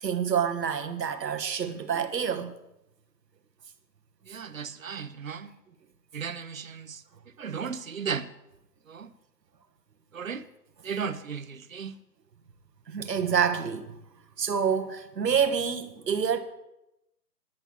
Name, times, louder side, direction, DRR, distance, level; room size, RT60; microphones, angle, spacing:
voice 1, 0.0-2.5 12.9-14.0 14.4-16.4, right 7 dB, 90° right, 1.5 m, -27 dB
voice 2, 4.2-5.5 6.1-7.0 7.4-8.3 8.9-9.1 10.1-10.4 10.8-12.0, right 6 dB, 55° right, 0.8 m, -35 dB
10.5 x 8.7 x 6.1 m
hypercardioid pair, 180°, 49 cm